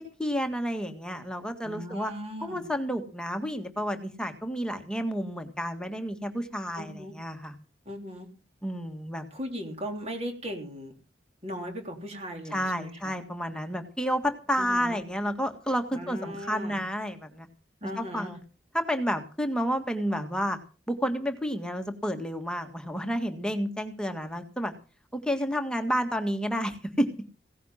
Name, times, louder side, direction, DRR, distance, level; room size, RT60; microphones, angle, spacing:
voice 1, 0.0-2.1 2.4-7.5 8.6-9.2 12.5-17.5 18.0-18.4 18.7-20.6 20.9-24.7 25.1-27.1, equal, 5° left, 5 dB, 1.8 m, -30 dB
voice 2, 1.6-2.6 6.7-7.1 7.9-8.3 9.3-10.9 11.4-13.1 14.6-15.0 15.9-16.8 17.8-18.3, equal, 35° right, 3 dB, 3.6 m, -38 dB
17.0 x 10.0 x 5.7 m, 0.35 s
head